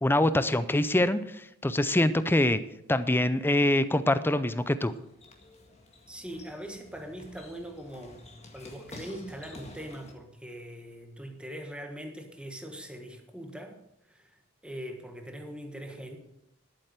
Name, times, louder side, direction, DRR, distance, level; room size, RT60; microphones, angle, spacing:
voice 1, 0.0-2.6 2.9-4.9, left 1 dB, 10° left, 13 dB, 0.5 m, -24 dB
sound 1, 4.6-10.1, left 2 dB, 30° left, 1.9 m, -50 dB
voice 2, 6.1-8.2 8.5-13.8 14.1-16.2, equal, 5° right, 4 dB, 1.4 m, -42 dB
11.0 x 8.8 x 6.7 m, 0.81 s
head